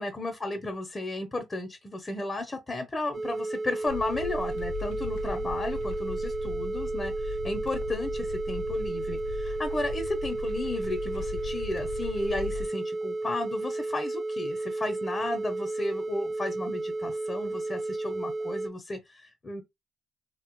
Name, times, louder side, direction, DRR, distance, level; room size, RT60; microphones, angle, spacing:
voice 1, 0.0-19.6, left 2 dB, 25° left, 0.6 m, -34 dB
sound 1, 3.1-18.7, right 2 dB, 35° right, 0.3 m, -33 dB
sound 2, 3.9-12.7, left 2 dB, 90° left, 0.4 m, -38 dB
3.2 x 2.0 x 3.0 m
cardioid pair, 90°, 0 cm